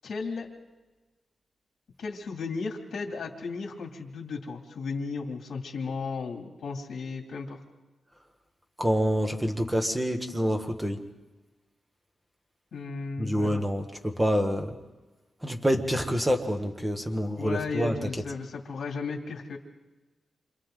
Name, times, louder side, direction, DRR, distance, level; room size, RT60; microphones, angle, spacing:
voice 1, 0.0-0.5 2.0-7.6 12.7-13.5 17.4-19.6, left 4 dB, 70° left, 1 dB, 2.4 m, -35 dB
voice 2, 8.8-11.0 13.2-14.7 15.4-18.1, equal, 5° right, 5 dB, 1.4 m, -27 dB
28.5 x 26.0 x 3.8 m, 1.2 s
wide cardioid pair, 180°, 0 cm